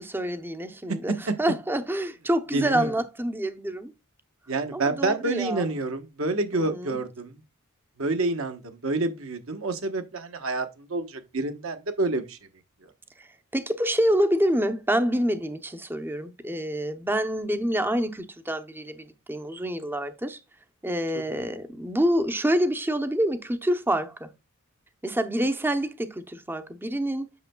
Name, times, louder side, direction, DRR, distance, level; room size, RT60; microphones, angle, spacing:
voice 1, 0.0-3.9 4.7-5.6 6.5-7.0 13.2-13.3 13.5-20.4 20.8-24.3 25.0-27.3, right 1 dB, 10° right, 0.7 m, -27 dB
voice 2, 2.5-2.9 4.5-7.4 8.0-12.4 21.1-21.5, right 2 dB, 65° right, 1.1 m, -28 dB
8.2 x 6.3 x 2.2 m
head